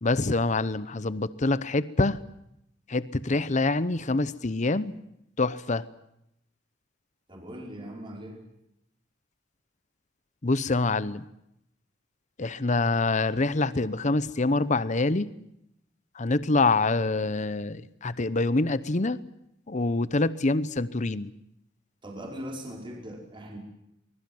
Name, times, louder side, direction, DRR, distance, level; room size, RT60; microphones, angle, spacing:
voice 1, 0.0-2.2 2.9-5.0 5.4-5.8 10.4-11.2 12.4-15.3 16.2-19.2 19.7-21.3, left 3 dB, 40° left, 16 dB, 0.8 m, -25 dB
voice 2, 7.3-8.4 22.0-23.6, equal, 25° right, 0 dB, 5.2 m, -40 dB
24.0 x 21.5 x 7.8 m, 0.80 s
head